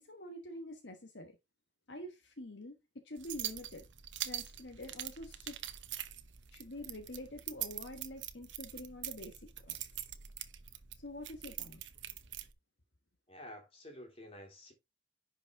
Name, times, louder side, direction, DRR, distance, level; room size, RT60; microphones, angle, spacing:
voice 1, 0.0-1.4 1.9-2.7 3.0-3.9 4.2-5.6 6.5-10.1 10.9-11.8, left 1 dB, 60° left, 1.4 m, -47 dB
sound 1, 3.2-12.5, right 12 dB, 70° right, 1.0 m, -44 dB
voice 2, 13.3-14.7, left 1 dB, 30° left, 3.3 m, -50 dB
10.5 x 5.3 x 3.6 m
head